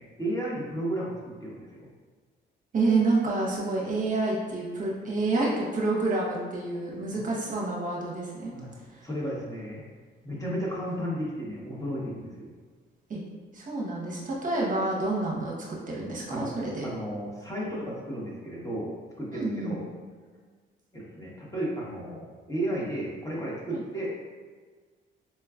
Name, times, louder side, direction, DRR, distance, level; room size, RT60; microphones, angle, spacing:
voice 1, 0.2-1.9 7.1-7.2 8.5-9.8 10.2-12.5 16.3-16.5 16.8-19.9 20.9-24.2, right 1 dB, 15° left, -5 dB, 0.9 m, -34 dB
voice 2, 2.7-8.5 8.8-9.1 13.1-13.2 13.5-15.5 15.9-16.9 19.3-19.7 23.7-23.8, right 3 dB, 40° right, -4 dB, 0.7 m, -28 dB
4.4 x 2.3 x 2.3 m, 1.5 s
cardioid pair, 90°, 20 cm